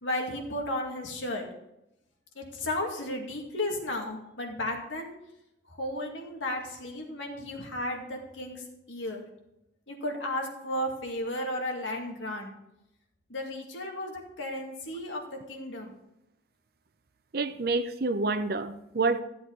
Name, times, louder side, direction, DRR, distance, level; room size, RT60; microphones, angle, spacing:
voice 1, 0.0-1.5 2.4-5.1 5.7-9.3 9.9-12.5 13.3-15.9, left 1 dB, 85° left, 1 dB, 2.1 m, -34 dB
voice 2, 17.3-19.2, right 3 dB, 50° right, 10 dB, 0.7 m, -28 dB
14.0 x 7.9 x 3.9 m, 0.87 s
head